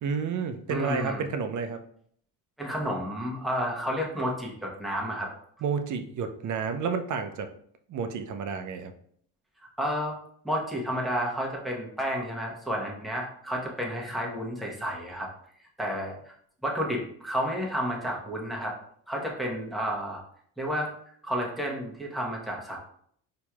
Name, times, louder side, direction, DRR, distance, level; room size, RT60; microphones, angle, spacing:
voice 1, 0.0-1.8 5.6-7.5 7.9-8.9, right 5 dB, 50° right, 7 dB, 0.6 m, -30 dB
voice 2, 0.7-1.2 2.6-5.3 9.8-10.1 10.4-15.3 15.8-16.3 16.6-18.7 19.1-20.2 20.6-20.9 21.2-22.8, equal, ahead, -2 dB, 1.0 m, -31 dB
4.3 x 2.9 x 2.3 m, 0.63 s
supercardioid pair, 70°, 40 cm